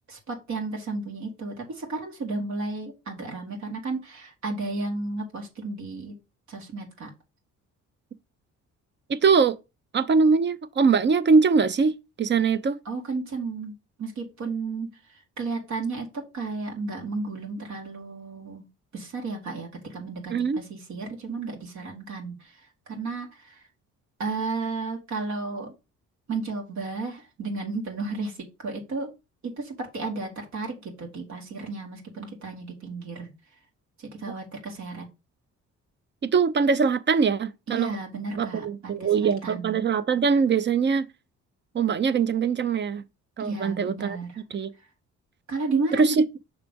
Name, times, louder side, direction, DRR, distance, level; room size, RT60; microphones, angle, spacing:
voice 1, 0.1-6.1 6.5-7.1 12.9-13.7 14.0-14.9 15.4-18.7 18.9-22.5 22.9-23.6 24.2-25.7 26.3-29.1 29.4-33.3 34.0-35.1 37.7-39.8 43.4-44.3 45.5-46.2, right 3 dB, 65° right, 1.9 m, -33 dB
voice 2, 9.1-9.6 9.9-12.8 20.3-20.6 34.3-34.4 36.2-37.9 38.3-41.1 41.7-43.0 43.4-44.2 44.5-44.7 45.9-46.2, right 5 dB, 40° right, 0.6 m, -22 dB
6.0 x 3.3 x 5.2 m
cardioid pair, 90°, 30 cm